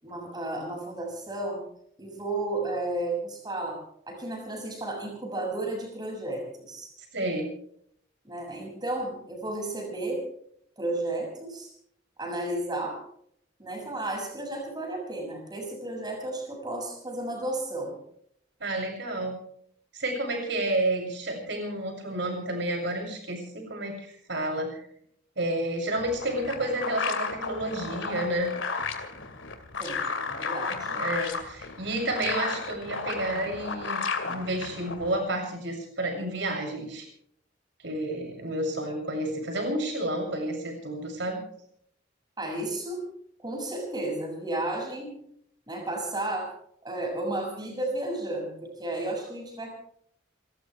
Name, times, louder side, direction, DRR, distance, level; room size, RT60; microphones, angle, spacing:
voice 1, 0.0-1.6 2.0-3.8 4.1-6.9 8.2-10.2 10.8-11.7 12.2-13.0 13.6-18.0 29.8-30.0 30.3-30.9 42.4-43.1 43.4-45.1 45.7-46.5 46.8-49.7, right 2 dB, 20° right, 1 dB, 6.8 m, -33 dB
voice 2, 7.1-7.5 18.6-19.4 19.9-24.8 25.4-28.5 30.7-37.1 37.8-41.4, right 1 dB, 65° right, 2 dB, 7.1 m, -30 dB
sound 1, 26.0-35.2, left 4 dB, 85° left, 2.5 m, -33 dB
30.0 x 14.0 x 3.4 m, 0.66 s
head